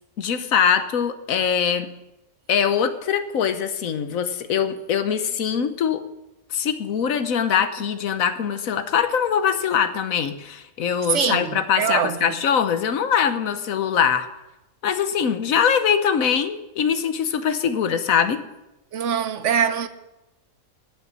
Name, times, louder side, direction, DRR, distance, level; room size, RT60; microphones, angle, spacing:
voice 1, 0.2-1.9 2.5-6.0 6.5-14.3 14.8-18.4, left 7 dB, 75° left, 1.3 m, -22 dB
voice 2, 11.1-12.3 18.9-19.9, right 7 dB, 65° right, 1.0 m, -23 dB
11.5 x 7.0 x 9.4 m
omnidirectional pair, 1.4 m